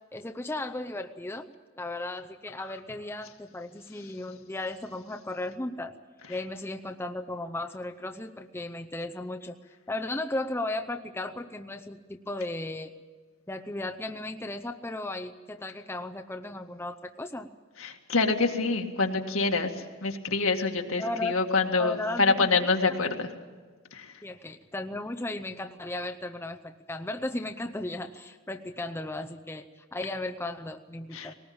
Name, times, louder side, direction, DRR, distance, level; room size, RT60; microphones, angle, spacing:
voice 1, 0.1-1.5 1.8-5.9 6.3-9.6 9.9-12.9 13.5-17.5 21.0-21.3 21.8-22.5 22.9-23.1 24.2-31.3, left 2 dB, 10° left, 5 dB, 0.7 m, -35 dB
voice 2, 17.8-23.3 23.9-24.2 31.1-31.3, left 3 dB, 75° left, 4 dB, 2.0 m, -26 dB
20.0 x 19.0 x 8.7 m, 1.5 s
head